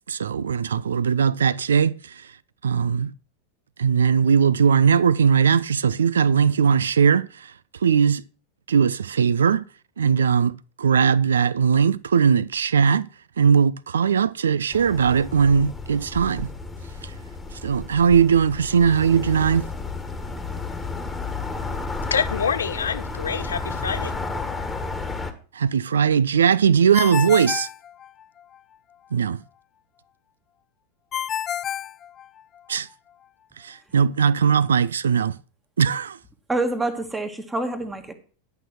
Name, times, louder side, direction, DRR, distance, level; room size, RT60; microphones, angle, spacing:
voice 1, 0.1-2.1 2.6-3.1 3.8-7.5 7.8-8.2 8.7-9.6 10.0-13.1 13.4-16.5 17.0-17.1 17.6-19.7 25.5-27.7 29.1-29.4 32.7-32.9 33.6-35.3 35.8-36.2, right 7 dB, 70° right, 0.5 m, -19 dB
sound 1, 14.7-25.3, left 4 dB, 10° left, 1.6 m, -32 dB
voice 2, 22.1-24.1, left 7 dB, 70° left, 0.8 m, -26 dB
Ringtone, 26.9-28.6 31.1-32.7, left 10 dB, 25° left, 0.4 m, -30 dB
voice 3, 36.5-38.1, right 2 dB, 10° right, 1.6 m, -26 dB
11.0 x 6.0 x 5.9 m
figure-of-eight pair, 90°, 0 cm